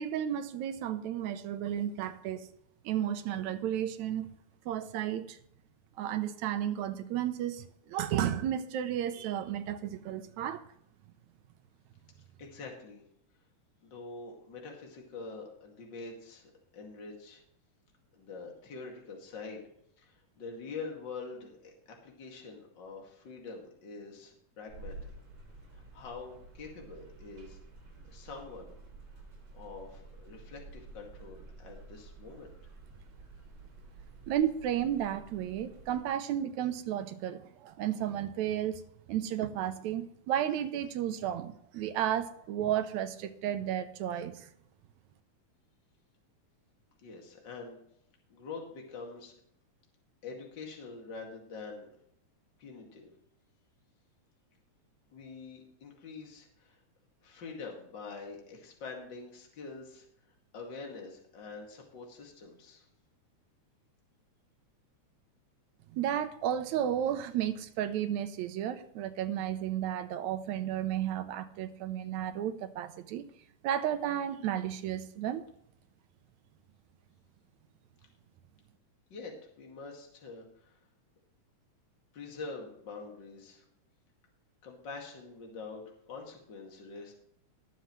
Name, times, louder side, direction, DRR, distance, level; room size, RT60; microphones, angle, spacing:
voice 1, 0.0-2.5 2.9-4.3 4.7-5.4 6.0-10.6 34.3-38.8 39.1-44.5 65.9-73.3 73.6-75.4, right 10 dB, 80° right, 10 dB, 2.0 m, -33 dB
voice 2, 12.4-13.0 13.8-17.4 18.1-19.6 20.0-25.1 25.7-27.6 28.0-28.7 29.5-32.5 47.0-47.8 48.3-49.4 50.2-51.9 52.6-53.1 55.1-56.8 57.2-62.9 79.1-80.8 82.1-83.6 84.6-87.1, left 4 dB, 40° left, 1 dB, 2.6 m, -45 dB
sound 1, 24.7-36.0, right 3 dB, 45° right, 4.5 m, -51 dB
19.0 x 7.2 x 3.2 m, 0.71 s
omnidirectional pair, 3.4 m